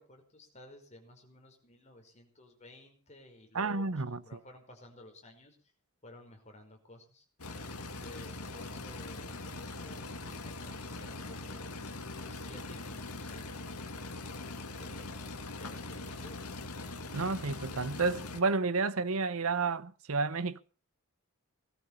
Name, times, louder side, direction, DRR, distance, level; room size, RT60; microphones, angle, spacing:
voice 1, 0.0-5.6 6.0-7.2 7.8-11.7 12.2-13.9 14.8-16.4, left 1 dB, 30° left, 5.3 m, -54 dB
voice 2, 3.5-4.4 17.1-20.6, right 4 dB, 70° right, 0.9 m, -31 dB
sound 1, 7.4-18.4, left 2 dB, 85° left, 2.1 m, -42 dB
19.5 x 13.0 x 5.7 m
head